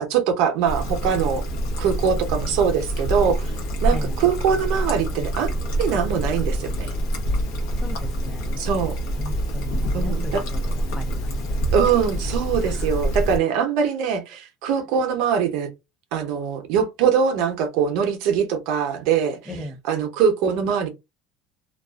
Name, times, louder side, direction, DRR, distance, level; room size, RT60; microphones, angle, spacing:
voice 1, 0.0-1.4 1.8-3.5 3.8-6.9 8.6-9.0 9.9-10.4 11.7-15.7 16.1-19.4 19.9-20.9, right 7 dB, 65° right, 0.7 m, -22 dB
Trickle dribble, 0.7-13.4, right 1 dB, 75° left, 0.8 m, -26 dB
voice 2, 7.8-8.6 9.2-11.7 12.6-12.9 19.5-19.8, equal, 5° left, 0.4 m, -38 dB
2.4 x 2.3 x 2.2 m
cardioid pair, 175°, 0 cm